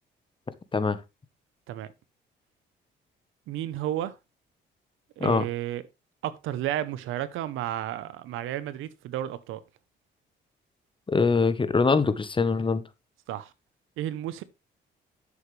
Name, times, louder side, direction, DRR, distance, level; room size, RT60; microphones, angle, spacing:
voice 1, 3.5-4.1 5.2-5.8 6.2-9.6 13.3-13.5 14.0-14.4, right 12 dB, 90° right, 0.9 m, -32 dB
voice 2, 11.1-12.8, left 4 dB, 25° left, 1.1 m, -23 dB
11.0 x 7.2 x 3.3 m
cardioid pair, 90°, 20 cm